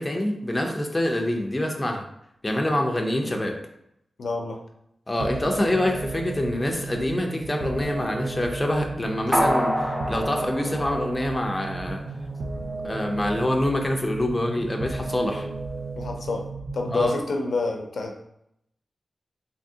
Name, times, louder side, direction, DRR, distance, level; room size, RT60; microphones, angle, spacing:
voice 1, 0.0-2.0 2.4-3.6 5.1-12.0 12.8-15.5 16.9-17.1, left 1 dB, 20° left, 2 dB, 0.4 m, -26 dB
voice 2, 4.2-4.6 16.0-16.5 16.7-18.3, left 3 dB, 75° left, 2 dB, 0.5 m, -28 dB
sound 1, 5.2-17.2, right 3 dB, 55° right, 0.4 m, -34 dB
sound 2, 9.3-11.9 12.2-12.3, equal, 20° right, 0.8 m, -27 dB
3.5 x 2.7 x 2.7 m, 0.78 s
wide cardioid pair, 125°, 0 cm